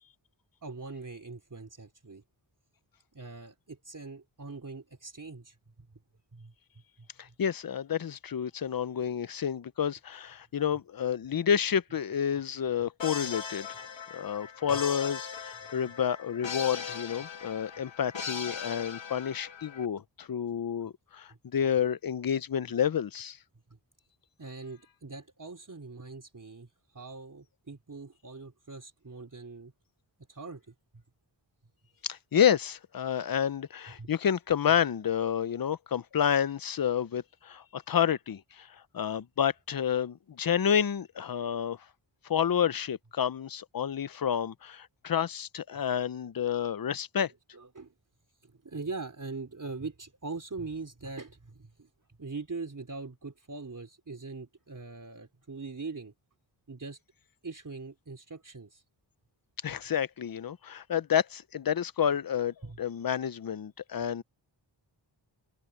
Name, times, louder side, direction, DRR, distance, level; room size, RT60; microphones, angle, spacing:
voice 1, 0.6-2.2 3.1-5.9 6.3-6.5 7.0-7.3 9.0-9.1 21.3-21.4 24.4-29.7 30.3-31.0 34.0-34.1 45.7-46.0 47.5-47.9 48.4-51.9 52.2-56.1 56.7-57.0 57.4-58.8 62.6-62.8, right 3 dB, 40° right, 4.0 m, -42 dB
voice 2, 7.2-23.4 32.0-41.8 42.2-47.3 59.6-64.2, left 8 dB, 50° left, 0.7 m, -29 dB
sound 1, 13.0-19.9, left 6 dB, 70° left, 2.3 m, -39 dB
wide cardioid pair, 90°, 47 cm